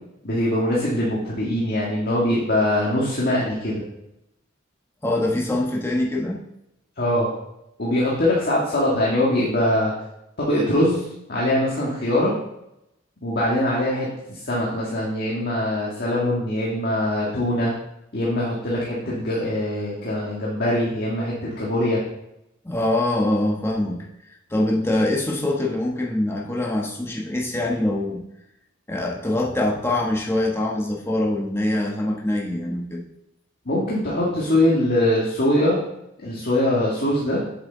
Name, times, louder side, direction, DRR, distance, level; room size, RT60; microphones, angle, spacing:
voice 1, 0.2-3.8 7.0-7.3 7.8-9.9 10.4-12.3 13.2-17.7 18.1-22.0 33.7-35.8 36.2-37.4, left 1 dB, 50° left, -5 dB, 1.7 m, -22 dB
voice 2, 5.0-6.4 22.6-28.2 28.9-33.0, left 1 dB, 10° left, -2 dB, 1.3 m, -24 dB
8.1 x 7.6 x 3.9 m, 0.85 s
head